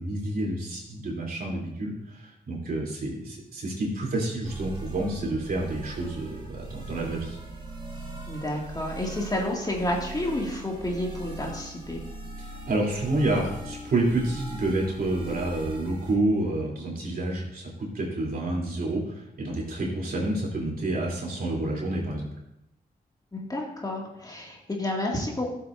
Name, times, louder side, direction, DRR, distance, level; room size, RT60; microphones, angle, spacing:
voice 1, 0.0-7.4 12.4-22.3, right 2 dB, 60° right, -3 dB, 3.3 m, -29 dB
sound 1, 4.4-16.1, right 2 dB, 30° right, 3.3 m, -40 dB
voice 2, 8.3-12.0 23.3-25.6, left 1 dB, 25° left, -1 dB, 2.2 m, -30 dB
13.5 x 7.6 x 2.7 m, 0.83 s
cardioid pair, 65°, 17 cm